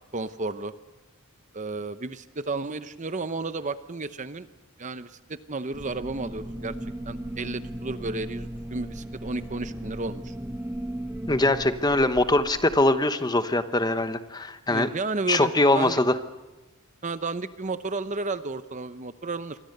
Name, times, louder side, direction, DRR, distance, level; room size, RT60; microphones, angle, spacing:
voice 1, 0.1-0.7 1.5-4.5 4.8-6.7 7.0-10.3 14.7-16.0 17.0-19.6, right 3 dB, 35° right, 12 dB, 0.7 m, -32 dB
sound 1, 5.7-12.9, right 1 dB, 10° right, 1.0 m, -37 dB
voice 2, 11.3-14.9 15.3-16.2, left 2 dB, 20° left, 10 dB, 1.0 m, -22 dB
27.5 x 24.0 x 6.7 m, 1.1 s
head